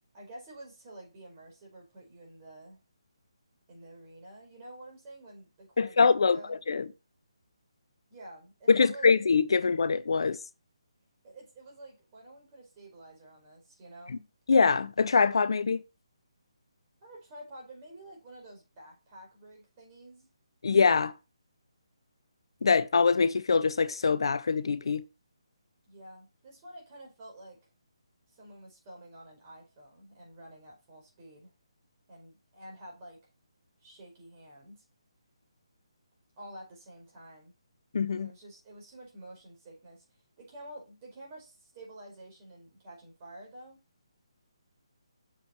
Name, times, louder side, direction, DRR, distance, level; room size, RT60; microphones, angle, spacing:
voice 1, 0.1-2.8 3.7-6.6 8.1-9.1 11.2-14.3 17.0-20.3 25.9-27.6 28.3-31.5 32.1-33.2 33.8-34.8 36.4-37.5 38.1-40.0 40.4-43.8, right 1 dB, 30° right, 4.8 m, -49 dB
voice 2, 5.8-6.8 8.7-10.4 14.5-15.8 20.6-21.1 22.6-25.0 37.9-38.3, left 5 dB, 60° left, 0.6 m, -24 dB
7.3 x 6.9 x 4.5 m
figure-of-eight pair, 145°, 3 cm